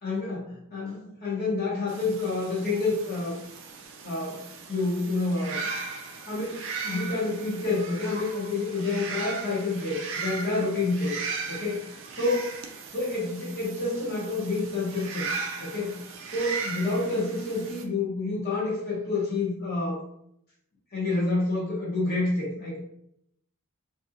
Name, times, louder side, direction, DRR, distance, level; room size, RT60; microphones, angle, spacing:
voice 1, 0.0-3.4 4.0-4.4 4.7-5.7 6.3-11.2 11.5-11.8 12.2-12.5 12.9-15.3 15.6-16.0 16.3-20.0 20.9-22.8, left 3 dB, 45° left, -6 dB, 0.8 m, -28 dB
sound 1, 1.9-17.8, right 4 dB, 55° right, 0.4 m, -38 dB
3.4 x 2.6 x 2.5 m, 0.73 s
head